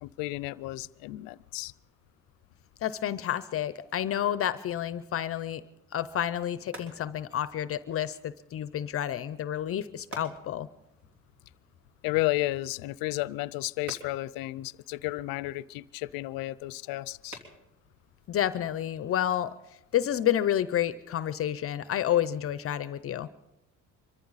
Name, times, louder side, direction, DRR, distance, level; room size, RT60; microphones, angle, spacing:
voice 1, 0.0-1.7 12.0-17.4, left 19 dB, 90° left, 20 dB, 0.5 m, -32 dB
voice 2, 2.8-5.6 5.9-10.7 18.3-19.5 19.9-23.3, left 11 dB, 45° left, 14 dB, 0.6 m, -29 dB
sound 1, 6.1-19.6, right 1 dB, 60° right, 3.8 m, -52 dB
25.0 x 14.5 x 4.1 m, 0.88 s
cardioid pair, 120°, 33 cm